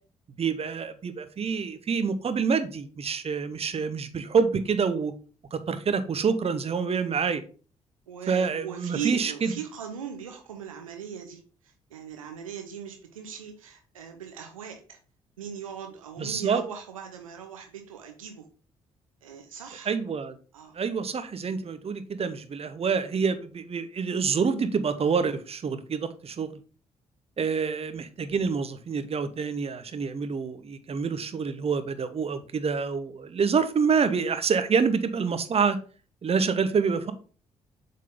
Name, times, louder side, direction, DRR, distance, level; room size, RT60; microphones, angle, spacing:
voice 1, 0.4-5.1 5.5-7.4 8.3-9.5 16.2-16.6 19.9-20.4 20.7-26.5 27.4-35.8 36.2-37.1, right 5 dB, 35° right, 0.8 m, -27 dB
voice 2, 8.1-11.4 11.9-15.0 15.4-18.4 19.2-19.9 20.5-20.8, right 8 dB, 85° right, 0.7 m, -39 dB
7.4 x 3.8 x 3.7 m
figure-of-eight pair, 40°, 17 cm